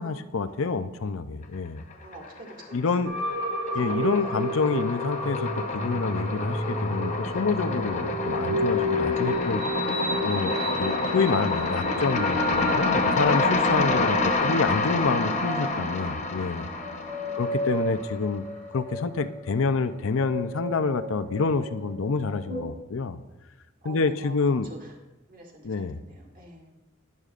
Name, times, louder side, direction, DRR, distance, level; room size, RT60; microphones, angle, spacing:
voice 1, 0.0-1.8 2.7-3.1 3.7-9.6 10.2-16.7 17.3-18.5 18.7-23.2 23.8-24.7 25.6-26.0, left 4 dB, 70° left, 11 dB, 0.5 m, -27 dB
sound 1, 1.9-2.6 2.9-18.1, left 3 dB, 35° left, 0.8 m, -28 dB
voice 2, 1.9-2.8 3.6-4.7 9.1-9.3 14.2-15.9 17.2-17.9 23.8-24.9 25.3-26.7, equal, 40° right, -1 dB, 1.9 m, -43 dB
sound 2, 3.0-22.6, equal, 80° right, 2.8 m, -32 dB
11.5 x 11.0 x 2.5 m, 1.0 s
head